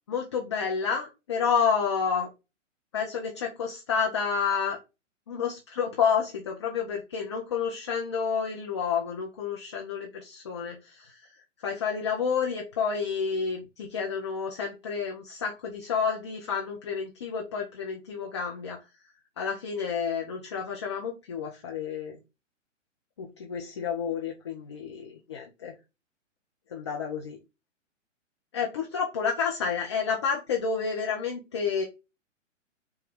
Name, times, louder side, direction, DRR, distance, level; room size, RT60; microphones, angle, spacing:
voice 1, 0.1-2.3 2.9-4.8 5.3-11.1 11.6-18.8 19.4-22.2 23.2-25.7 26.7-27.4 28.5-31.8, left 6 dB, 25° left, 0 dB, 0.4 m, -30 dB
4.5 x 2.2 x 3.5 m, 0.27 s
figure-of-eight pair, 120°, 38 cm